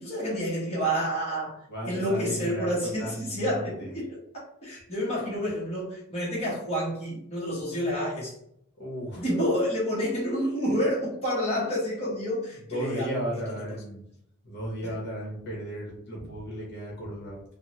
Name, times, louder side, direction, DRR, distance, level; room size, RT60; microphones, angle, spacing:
voice 1, 0.0-4.1 4.6-8.3 9.2-13.2 13.6-13.7 14.8-14.9, equal, 30° left, -6 dB, 1.0 m, -29 dB
voice 2, 1.7-3.9 8.8-9.2 12.7-14.0 14.4-17.4, equal, 50° left, -4 dB, 1.0 m, -35 dB
3.5 x 2.1 x 2.9 m, 0.72 s
head